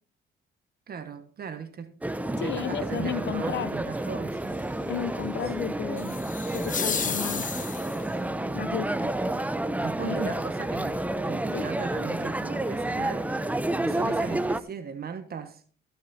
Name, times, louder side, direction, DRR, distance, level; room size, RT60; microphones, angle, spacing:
voice 1, 0.9-1.9 2.4-4.6 9.8-11.0 11.2-13.3 13.8-15.6, right 6 dB, 50° right, 1.3 m, -37 dB
sound 1, 2.0-14.6, right 1 dB, 5° right, 0.7 m, -30 dB
voice 2, 2.4-3.7 4.9-6.2 6.5-7.5 8.5-9.1 10.0-10.3 11.5-11.7, left 9 dB, 65° left, 0.8 m, -33 dB
sound 2, 6.0-8.1, left 6 dB, 40° left, 1.3 m, -32 dB
17.0 x 6.0 x 4.2 m
cardioid pair, 90°, 20 cm